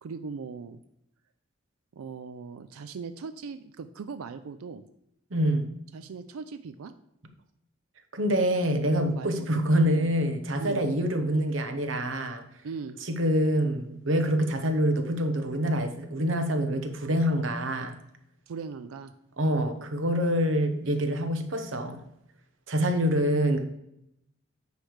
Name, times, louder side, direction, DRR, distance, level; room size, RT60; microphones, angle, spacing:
voice 1, 0.0-0.8 1.9-4.8 5.9-6.9 9.0-9.5 9.8-10.1 10.6-10.9 12.6-13.0 18.5-19.1 23.1-23.6, right 5 dB, 90° right, 10 dB, 0.4 m, -39 dB
voice 2, 5.3-5.7 8.1-12.4 13.0-18.0 19.4-22.0 22.7-23.6, equal, 65° right, 8 dB, 0.9 m, -26 dB
9.5 x 3.3 x 6.4 m, 0.79 s
head